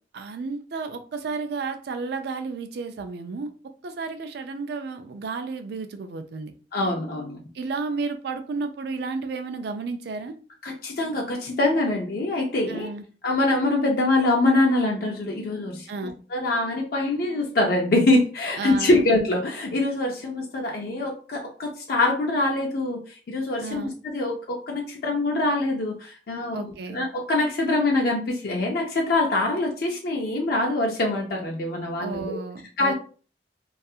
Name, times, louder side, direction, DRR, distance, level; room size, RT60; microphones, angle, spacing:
voice 1, 0.1-3.5 3.8-6.5 7.5-10.3 12.7-13.0 15.9-16.1 18.6-19.1 23.6-23.9 26.5-27.0 32.0-32.9, right 4 dB, 60° right, 7 dB, 0.4 m, -32 dB
voice 2, 6.7-7.4 10.6-12.9 13.2-15.9 16.3-32.4 32.8-32.9, left 2 dB, 55° left, 0 dB, 0.4 m, -24 dB
2.3 x 2.3 x 2.7 m, 0.41 s
head